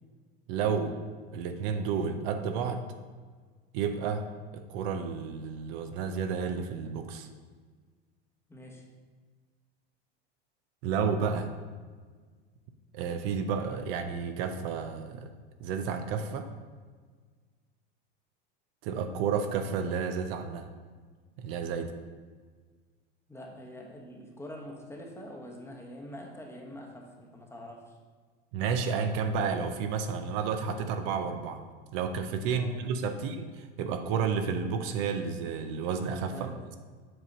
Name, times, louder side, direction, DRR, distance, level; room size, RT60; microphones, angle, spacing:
voice 1, 0.5-1.0 1.3-2.8 3.7-4.3 4.5-7.3 10.8-11.5 12.9-15.3 15.6-16.5 18.8-20.7 21.4-21.9 28.5-31.6 31.9-36.6, right 6 dB, 65° right, 7 dB, 0.6 m, -31 dB
voice 2, 8.5-8.8 23.3-27.9 32.5-32.8 33.1-33.2 36.3-36.6, left 1 dB, 10° left, 0 dB, 1.0 m, -45 dB
7.7 x 2.8 x 5.4 m, 1.5 s
supercardioid pair, 110°, 31 cm